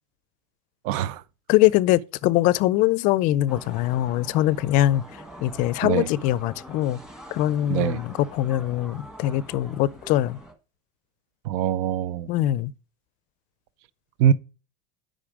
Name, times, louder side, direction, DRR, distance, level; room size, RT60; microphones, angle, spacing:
voice 1, 0.8-1.2 5.8-6.1 7.7-8.0 11.4-12.3 14.2-14.3, right 10 dB, 70° right, 0.6 m, -23 dB
voice 2, 1.5-7.0 7.3-10.4 12.3-12.7, left 14 dB, 50° left, 0.5 m, -22 dB
sound 1, 3.5-10.5, right 1 dB, 5° right, 1.3 m, -44 dB
8.7 x 5.3 x 4.9 m
supercardioid pair, 145°, 17 cm